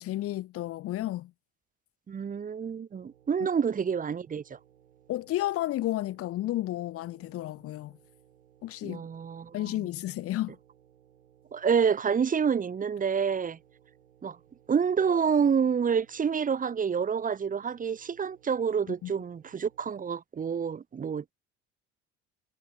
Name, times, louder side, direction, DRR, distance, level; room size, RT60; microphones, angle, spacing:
voice 1, 0.0-1.3 5.1-8.0 8.6-9.0 9.5-10.6 18.9-19.1, left 15 dB, 40° left, 0.5 m, -32 dB
voice 2, 2.1-4.6 8.8-9.6 11.5-13.6 14.2-14.4 14.7-21.3, right 6 dB, 20° right, 0.7 m, -28 dB
sound 1, 2.9-20.1, right 10 dB, 85° right, 7.4 m, -62 dB
hypercardioid pair, 60°, 37 cm